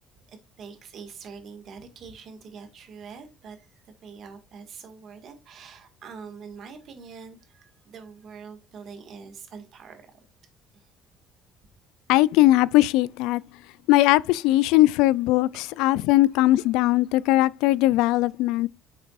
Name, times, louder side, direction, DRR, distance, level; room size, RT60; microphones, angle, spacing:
voice 1, 0.3-10.2 10.7-10.9 17.3-17.4, right 5 dB, 40° right, 1.9 m, -44 dB
voice 2, 12.1-13.4 13.9-15.5 15.8-18.7, left 17 dB, 85° left, 0.4 m, -19 dB
8.7 x 7.3 x 2.5 m
cardioid pair, 175°, 0 cm